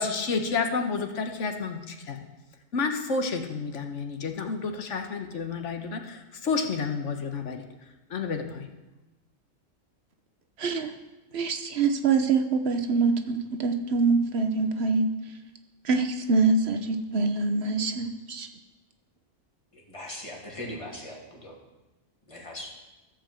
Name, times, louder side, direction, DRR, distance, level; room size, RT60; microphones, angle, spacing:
voice 1, 0.0-2.2 2.7-7.6 8.1-8.7, left 4 dB, 65° left, 5 dB, 1.3 m, -30 dB
voice 2, 10.6-10.9 11.3-15.1 15.9-18.5, right 4 dB, 55° right, 7 dB, 1.1 m, -25 dB
voice 3, 19.7-21.6 22.3-22.7, left 1 dB, 25° left, -2 dB, 2.3 m, -40 dB
14.5 x 5.0 x 7.4 m, 1.1 s
omnidirectional pair, 1.3 m